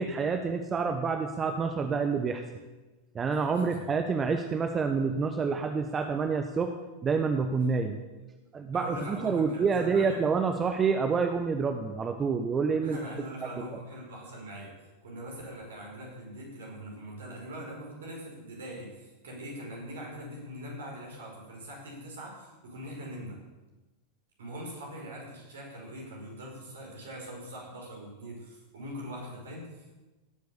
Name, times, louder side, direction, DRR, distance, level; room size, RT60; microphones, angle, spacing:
voice 1, 0.0-2.4 3.1-6.7 7.0-8.0 8.5-13.0 13.4-13.8, right 5 dB, 20° right, 6 dB, 1.0 m, -28 dB
voice 2, 8.7-10.2 12.8-14.8 15.0-23.4 24.4-30.0, equal, 60° right, -1 dB, 5.4 m, -42 dB
17.5 x 8.2 x 7.0 m, 1.2 s
figure-of-eight pair, 90°, 0 cm